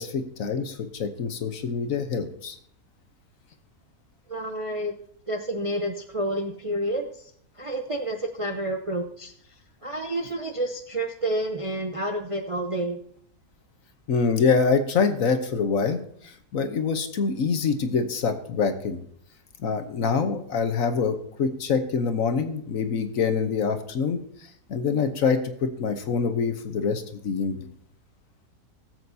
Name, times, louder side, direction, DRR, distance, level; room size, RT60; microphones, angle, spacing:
voice 1, 0.0-2.6 14.1-19.0 19.6-24.2 24.7-27.7, left 5 dB, 60° left, 8 dB, 1.3 m, -25 dB
voice 2, 4.3-4.9 5.3-7.3 7.6-9.3 9.8-13.0, right 1 dB, 35° right, 3 dB, 0.5 m, -29 dB
18.5 x 7.8 x 2.7 m, 0.67 s
omnidirectional pair, 1.7 m